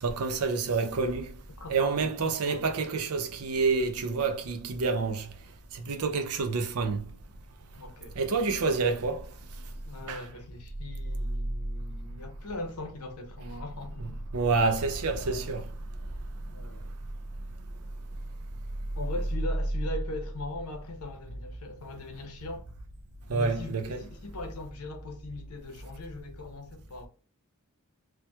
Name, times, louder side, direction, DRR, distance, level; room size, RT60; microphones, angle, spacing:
voice 1, 0.0-1.3 1.7-5.2 5.8-7.0 8.2-9.2 10.1-10.2 14.0-14.1 14.3-15.6 23.3-24.0, right 4 dB, 80° right, 0.6 m, -28 dB
voice 2, 1.6-2.7 7.8-8.2 9.9-14.2 15.1-15.6 16.4-16.9 19.0-22.7 23.3-27.1, left 2 dB, 80° left, 0.7 m, -40 dB
4.4 x 2.2 x 2.2 m
head